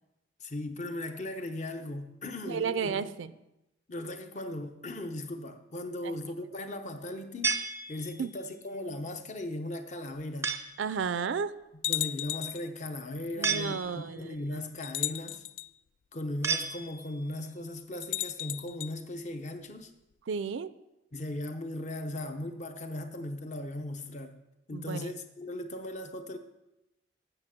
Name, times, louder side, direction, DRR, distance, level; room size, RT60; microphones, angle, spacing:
voice 1, 0.4-3.1 3.9-7.6 7.9-10.5 11.9-15.4 16.1-19.9 21.1-24.4 24.7-26.4, left 1 dB, 40° left, 7 dB, 0.8 m, -38 dB
voice 2, 2.5-3.3 6.0-6.2 8.2-8.3 10.8-11.5 13.4-14.6 20.3-20.7 24.7-25.1, right 6 dB, 85° right, 15 dB, 0.4 m, -33 dB
sound 1, 7.4-8.4 10.4-10.9 13.4-14.3 16.4-17.3, right 5 dB, 15° right, 0.4 m, -33 dB
sound 2, 10.2-10.3 11.0-11.1 11.8-12.7 13.8-13.9 14.8-15.7 18.0-18.9, left 14 dB, 80° left, 0.4 m, -34 dB
8.9 x 6.8 x 5.9 m, 0.93 s
head